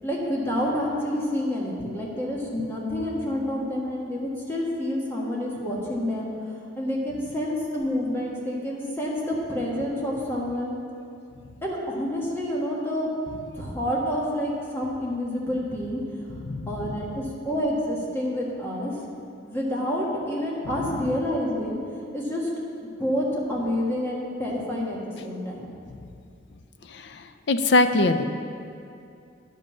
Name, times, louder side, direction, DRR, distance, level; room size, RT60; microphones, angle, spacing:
voice 1, 0.0-6.3 6.7-10.8 11.6-13.1 13.5-16.0 16.7-18.9 19.4-21.8 22.1-22.5 23.0-25.7, left 1 dB, 10° left, -4 dB, 1.6 m, -28 dB
voice 2, 16.4-16.9 26.9-28.2, left 2 dB, 60° left, 9 dB, 0.5 m, -23 dB
10.5 x 5.4 x 7.5 m, 2.5 s
head